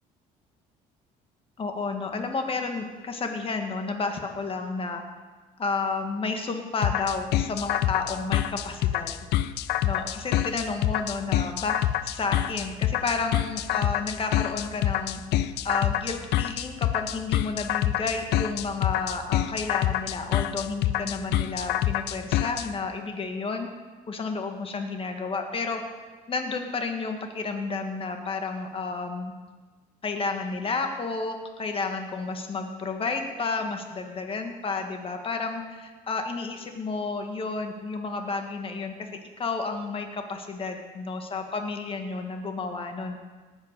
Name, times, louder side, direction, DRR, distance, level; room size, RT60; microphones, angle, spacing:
voice 1, 1.6-5.0 5.6-9.2 9.8-11.7 12.0-15.2 15.6-23.7 24.1-25.8 26.3-29.3 30.0-38.9 39.4-43.2, left 4 dB, 35° left, 4 dB, 1.8 m, -31 dB
sound 1, 6.8-22.7, left 13 dB, 80° left, 0.6 m, -26 dB
18.5 x 8.3 x 6.7 m, 1.3 s
cardioid pair, 110°, 17 cm